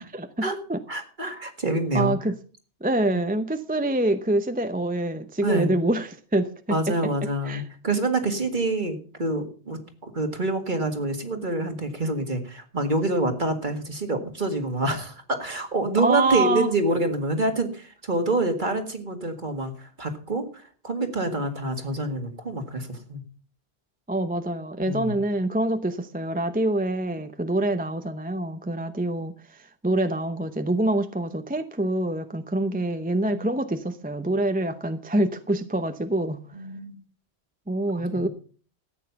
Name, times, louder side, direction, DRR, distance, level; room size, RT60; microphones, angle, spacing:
voice 1, 0.1-0.8 1.9-2.3 2.8-6.9 7.5-7.6 16.0-16.7 24.1-36.4 37.7-38.3, right 1 dB, 10° right, 9 dB, 0.7 m, -26 dB
voice 2, 0.9-2.1 3.1-3.2 5.4-5.8 6.7-23.2 24.8-25.2 33.3-33.5 36.5-37.0 38.1-38.3, right 2 dB, 45° right, 6 dB, 2.0 m, -27 dB
14.0 x 9.0 x 5.8 m, 0.41 s
omnidirectional pair, 1.1 m